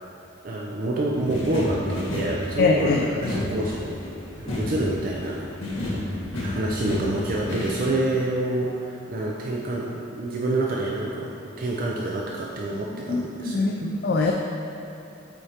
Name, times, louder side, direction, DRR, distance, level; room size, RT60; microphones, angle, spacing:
voice 1, 0.4-4.0 4.4-5.4 6.3-13.9, right 1 dB, 45° right, -3 dB, 0.4 m, -27 dB
sound 1, 1.1-7.9, left 1 dB, 80° left, 1.4 m, -31 dB
voice 2, 2.6-3.0 13.1-14.3, left 3 dB, 50° left, 0 dB, 0.3 m, -23 dB
8.0 x 4.4 x 2.9 m, 2.8 s
head